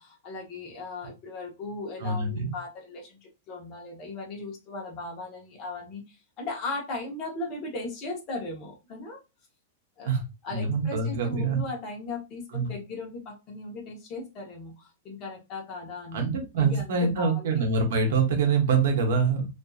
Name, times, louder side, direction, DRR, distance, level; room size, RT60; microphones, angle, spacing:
voice 1, 0.0-9.2 10.0-16.3 16.6-17.6 18.1-18.2, left 3 dB, 25° left, -1 dB, 0.8 m, -37 dB
voice 2, 2.0-2.5 10.0-10.2 10.5-11.6 12.5-12.7 16.1-19.5, right 4 dB, 60° right, 3 dB, 0.8 m, -25 dB
2.6 x 2.5 x 2.3 m, 0.26 s
supercardioid pair, 170°, 0 cm